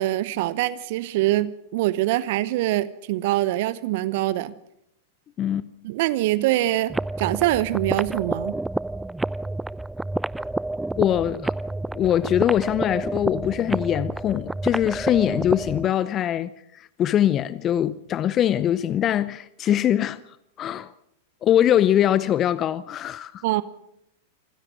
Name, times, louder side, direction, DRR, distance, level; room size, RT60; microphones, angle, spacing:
voice 1, 0.0-4.5 5.8-8.5 23.4-23.6, right 16 dB, 55° right, 0.8 m, -24 dB
voice 2, 5.4-5.7 11.0-11.5 11.9-20.2 20.6-20.9 21.4-23.4, left 11 dB, 30° left, 0.7 m, -22 dB
sound 1, 6.9-15.9, right 2 dB, 5° right, 0.7 m, -29 dB
26.5 x 16.0 x 6.4 m
figure-of-eight pair, 95°, 0 cm